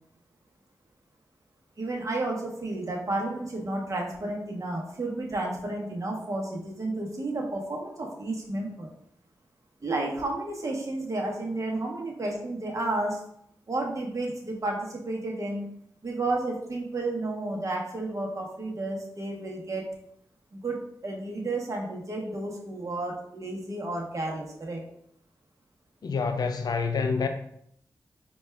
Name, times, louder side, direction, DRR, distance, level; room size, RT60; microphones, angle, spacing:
voice 1, 1.8-8.9 9.8-13.2 13.7-15.7 16.0-19.9 20.5-24.8, right 2 dB, 50° right, 0.9 m, -32 dB
voice 2, 26.0-27.3, left 5 dB, 70° left, 0.4 m, -27 dB
4.1 x 2.3 x 3.3 m
cardioid pair, 60°, 7 cm